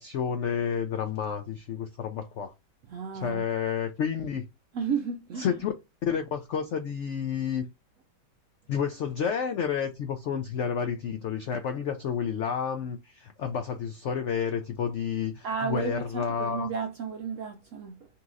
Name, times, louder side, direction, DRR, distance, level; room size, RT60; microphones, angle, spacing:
voice 1, 0.0-2.5 3.1-4.5 5.4-5.7 6.0-7.6 8.7-16.7, left 7 dB, 85° left, 0.6 m, -30 dB
voice 2, 2.9-3.5 4.7-5.5 15.4-18.1, right 6 dB, 75° right, 0.7 m, -33 dB
5.5 x 2.9 x 2.4 m
omnidirectional pair, 1.9 m